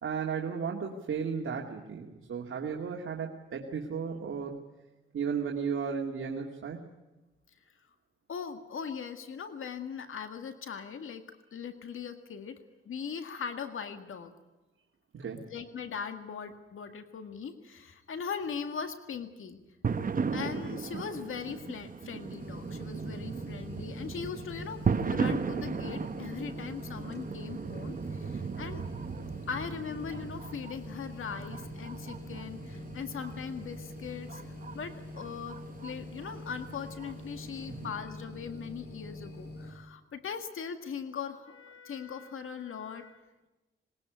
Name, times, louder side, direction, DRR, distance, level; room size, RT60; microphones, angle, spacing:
voice 1, 0.0-4.6 5.1-6.9 15.1-15.5 37.7-37.9, right 6 dB, 70° right, 1 dB, 2.4 m, -34 dB
voice 2, 8.3-11.2 11.5-12.6 12.9-14.3 15.5-19.6 20.3-28.8 29.5-43.2, left 6 dB, 75° left, 8 dB, 1.9 m, -40 dB
sound 1, 19.8-37.8, right 5 dB, 40° right, 1.2 m, -37 dB
sound 2, 22.4-39.7, left 1 dB, 50° left, 6.9 m, -45 dB
21.0 x 19.5 x 9.2 m, 1.1 s
cardioid pair, 95°, 21 cm